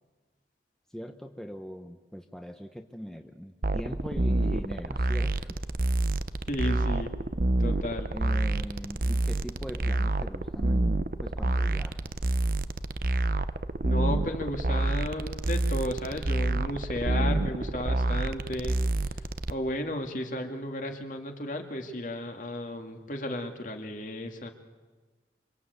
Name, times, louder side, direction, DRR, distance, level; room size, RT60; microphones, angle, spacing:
voice 1, 0.9-5.6 8.1-11.0 11.2-12.1, equal, 5° left, 5 dB, 1.0 m, -40 dB
sound 1, 3.6-19.5, right 2 dB, 50° right, 0.8 m, -28 dB
voice 2, 6.5-7.2 7.6-8.1 13.8-24.5, left 1 dB, 45° left, 4 dB, 2.3 m, -34 dB
26.5 x 26.0 x 8.2 m, 1.3 s
head